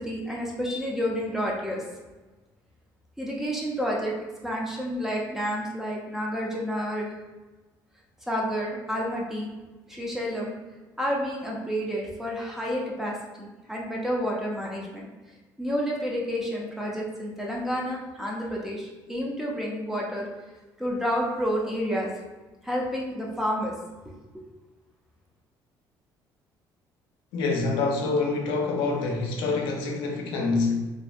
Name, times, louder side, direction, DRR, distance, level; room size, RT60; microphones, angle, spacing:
voice 1, 0.0-1.8 3.2-4.1 4.4-7.1 8.3-9.5 9.9-10.5 11.0-15.1 15.6-20.3 20.8-22.1 22.6-23.7 24.1-24.4, equal, 5° right, -2 dB, 0.4 m, -30 dB
voice 2, 27.3-30.8, left 3 dB, 90° left, 0 dB, 0.5 m, -26 dB
2.5 x 2.1 x 2.4 m, 1.2 s
cardioid pair, 130°, 8 cm